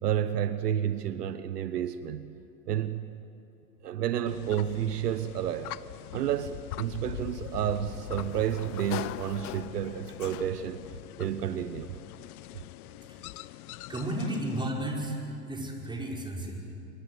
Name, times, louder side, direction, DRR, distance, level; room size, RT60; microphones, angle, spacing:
voice 1, 0.0-2.3 2.7-3.0 3.8-5.7 6.1-10.9 11.2-12.0, right 10 dB, 75° right, 12 dB, 1.1 m, -30 dB
green aracari, 4.3-14.7, left 15 dB, 65° left, 0.8 m, -43 dB
Sliding door, 6.9-10.8, left 14 dB, 30° left, 0.6 m, -41 dB
voice 2, 13.9-16.7, right 1 dB, 10° right, -1 dB, 5.7 m, -33 dB
26.0 x 24.0 x 8.0 m, 2.9 s
hypercardioid pair, 100°, 49 cm